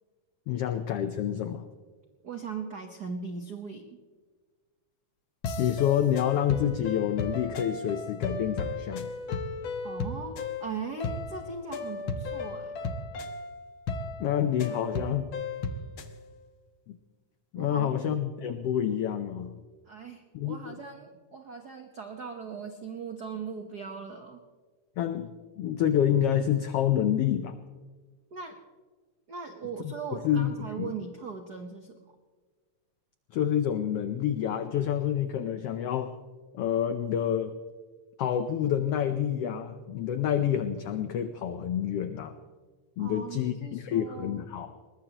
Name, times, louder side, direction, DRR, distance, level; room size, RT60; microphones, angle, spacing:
voice 1, 0.5-1.6 5.6-9.1 14.2-15.3 16.9-17.0 17.5-19.5 20.3-20.7 25.0-25.3 25.6-27.5 29.8-29.9 30.2-30.5 30.8-30.9 33.3-36.1 36.5-37.5 38.2-42.4 43.0-44.7, left 10 dB, 85° left, 9 dB, 1.3 m, -28 dB
voice 2, 2.2-4.0 9.8-12.8 17.6-18.1 19.9-24.4 28.3-28.6 29.3-32.0 43.0-44.5, right 5 dB, 80° right, 5 dB, 0.8 m, -39 dB
sound 1, 5.4-16.1, left 3 dB, 60° left, 1.4 m, -35 dB
21.0 x 21.0 x 3.0 m, 1.4 s
omnidirectional pair, 3.6 m